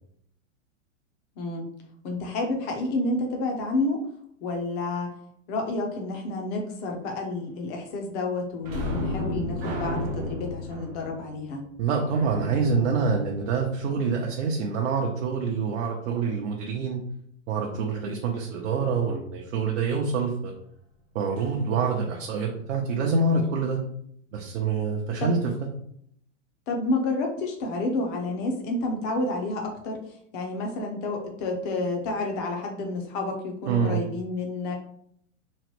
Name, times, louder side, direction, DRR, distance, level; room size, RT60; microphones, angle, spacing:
voice 1, 1.4-1.7 2.0-4.0 4.4-5.1 5.5-11.6 25.2-25.3 26.7-30.0 30.3-34.7, left 2 dB, 25° left, 2 dB, 0.5 m, -29 dB
sound 1, 8.6-14.0 21.4-21.5 21.9-22.0, left 1 dB, 25° right, 0.5 m, -33 dB
voice 2, 11.8-17.0 17.5-20.5 21.1-23.8 24.3-25.5 33.7-34.0, right 4 dB, 65° right, 0 dB, 0.6 m, -26 dB
3.1 x 2.1 x 2.9 m, 0.68 s
hypercardioid pair, 135°, 38 cm